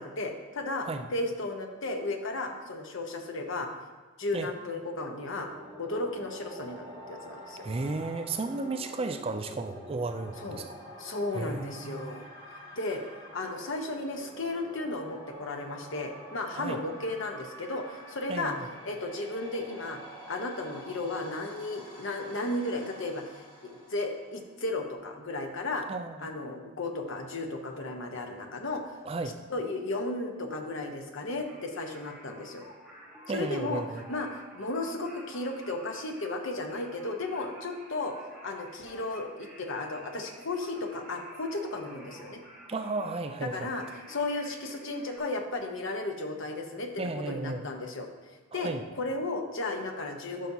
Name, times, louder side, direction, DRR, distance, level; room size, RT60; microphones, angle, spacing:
voice 1, 0.0-3.7 4.2-5.5 5.8-7.7 10.4-10.6 11.0-12.3 12.7-13.0 13.3-18.5 18.8-20.0 20.3-25.9 26.2-29.0 29.5-32.7 33.3-33.8 34.1-38.1 38.4-42.4 43.4-48.1 48.5-48.7 49.0-50.5, left 2 dB, 65° left, 3 dB, 0.9 m, -34 dB
sound 1, 4.7-24.5, equal, 20° left, 2.0 m, -48 dB
voice 2, 7.6-10.7 11.3-12.3 16.6-16.8 18.3-18.7 25.9-26.3 29.1-29.4 33.3-34.0 42.7-43.7 47.0-47.6 48.5-48.8, right 3 dB, 25° right, 8 dB, 0.3 m, -34 dB
Singing, 31.4-45.2, equal, 5° right, 1.3 m, -51 dB
11.5 x 5.7 x 2.7 m, 1.4 s
head